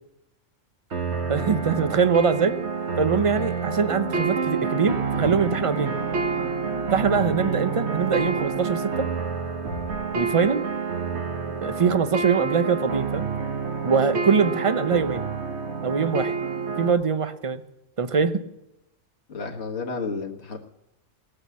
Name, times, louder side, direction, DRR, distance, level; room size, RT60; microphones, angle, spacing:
sound 1, 0.9-16.9, right 5 dB, 60° right, 1.5 m, -28 dB
voice 1, 1.3-2.6 3.0-6.0 6.9-9.1 10.1-10.7 11.4-13.3 13.8-15.2 15.8-16.3 16.8-17.6 18.0-18.4, right 5 dB, 35° right, 11 dB, 0.6 m, -23 dB
Thunder, 5.0-9.6, right 1 dB, 15° right, 1.3 m, -42 dB
sound 2, 9.6-11.4, left 1 dB, 75° right, 2.2 m, -42 dB
voice 2, 19.3-20.6, left 4 dB, 60° left, 1 dB, 1.7 m, -32 dB
19.5 x 6.8 x 8.3 m, 0.88 s
omnidirectional pair, 1.3 m